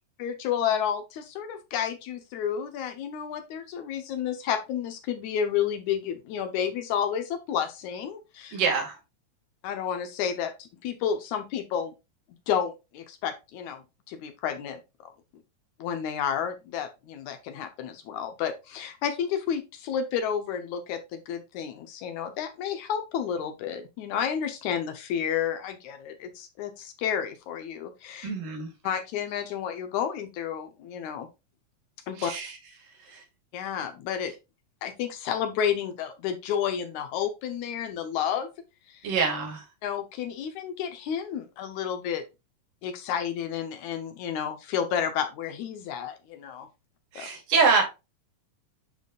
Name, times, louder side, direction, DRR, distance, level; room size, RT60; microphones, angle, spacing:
voice 1, 0.2-8.6 9.6-11.9 12.5-13.8 14.1-15.1 15.8-28.3 28.8-31.3 32.1-32.3 33.5-34.3 34.8-38.5 38.9-39.1 39.8-42.2 42.8-46.7 47.2-47.3, left 8 dB, 75° left, 2.0 m, -31 dB
voice 2, 8.5-9.0 28.2-28.7 32.2-32.5 33.0-33.2 39.0-39.7 47.1-47.8, right 5 dB, 85° right, 3.6 m, -25 dB
10.5 x 4.0 x 2.4 m
omnidirectional pair, 3.7 m